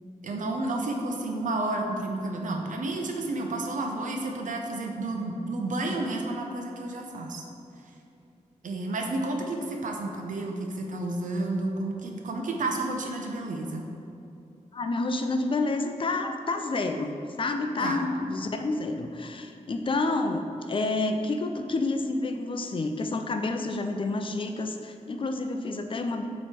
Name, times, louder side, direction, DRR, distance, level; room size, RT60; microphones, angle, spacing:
voice 1, 0.2-7.4 8.6-13.9 17.8-18.0, right 2 dB, 85° right, 2 dB, 0.7 m, -31 dB
voice 2, 14.7-26.3, left 2 dB, 40° left, 6 dB, 0.5 m, -29 dB
7.9 x 3.2 x 4.4 m, 2.7 s
wide cardioid pair, 110°, 13 cm